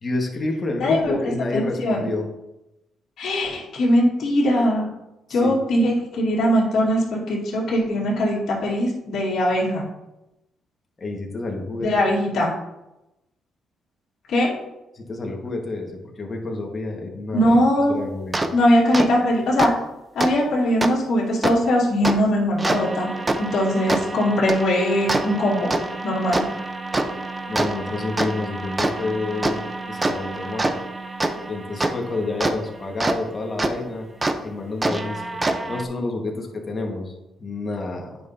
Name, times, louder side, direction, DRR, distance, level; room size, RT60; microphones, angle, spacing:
voice 1, 0.0-2.3 5.3-5.6 11.0-11.9 14.9-17.5 17.9-18.4 27.5-30.7 31.5-34.1 34.4-35.4 35.7-38.2, left 2 dB, 35° left, 1 dB, 1.5 m, -29 dB
voice 2, 0.8-1.1 1.5-2.1 3.2-4.9 5.3-9.9 11.8-12.5 14.3-14.6 17.3-18.0 18.5-19.7 20.1-23.1 23.4-25.7 26.0-26.4, equal, 65° left, -5 dB, 2.4 m, -20 dB
sound 1, 18.3-18.5 18.9-19.1 19.6-19.7 20.2-20.3 20.8-20.9 21.4-21.5 22.0-22.1 22.6-33.2 33.6-33.7 34.2-34.3 34.8-35.8, right 2 dB, 20° right, 0.7 m, -26 dB
9.3 x 5.4 x 2.7 m, 0.94 s
cardioid pair, 90°, 0 cm